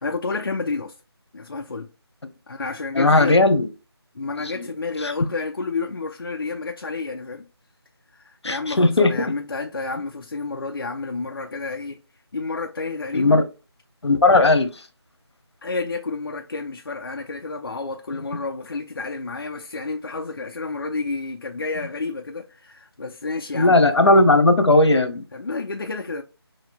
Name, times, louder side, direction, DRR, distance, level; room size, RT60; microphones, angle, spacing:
voice 1, 0.0-0.9 1.3-1.9 2.5-3.4 4.1-7.5 8.1-12.0 12.3-13.5 15.6-23.8 25.3-26.2, left 3 dB, 55° left, 0.5 m, -30 dB
voice 2, 3.0-3.7 4.5-4.7 5.0-5.1 8.4-9.1 13.1-13.4 14.0-14.7 23.5-25.2, left 2 dB, 80° left, 0.9 m, -16 dB
5.8 x 2.7 x 2.2 m
figure-of-eight pair, 170°, 14 cm